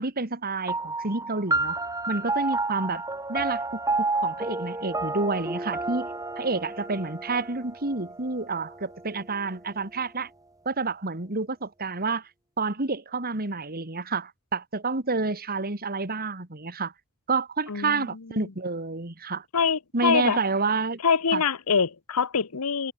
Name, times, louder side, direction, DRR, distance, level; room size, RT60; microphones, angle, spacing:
voice 1, 0.0-1.8 2.1-3.0 3.3-3.8 4.2-6.1 6.4-10.3 10.6-12.2 12.6-16.9 17.3-19.4 19.9-21.0 21.3-21.4, right 3 dB, 45° right, 2.9 m, -29 dB
sound 1, 0.7-9.5, right 3 dB, 15° right, 3.5 m, -31 dB
voice 2, 17.7-18.5 19.5-20.4 21.0-22.9, left 6 dB, 85° left, 1.0 m, -25 dB
head